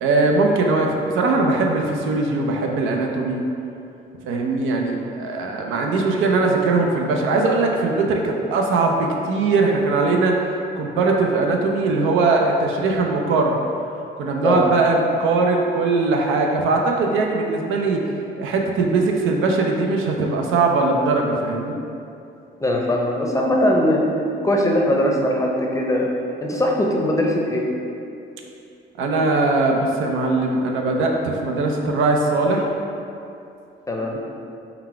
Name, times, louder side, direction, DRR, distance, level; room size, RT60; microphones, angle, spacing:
voice 1, 0.0-3.4 4.2-10.4 10.8-13.6 14.2-21.8 29.0-32.7, right 3 dB, 90° right, 1 dB, 0.5 m, -20 dB
voice 2, 22.6-24.0 24.4-26.1 26.4-27.6 33.9-34.2, left 1 dB, 15° left, -1 dB, 0.6 m, -20 dB
3.9 x 2.2 x 4.5 m, 2.6 s
cardioid pair, 90°, 20 cm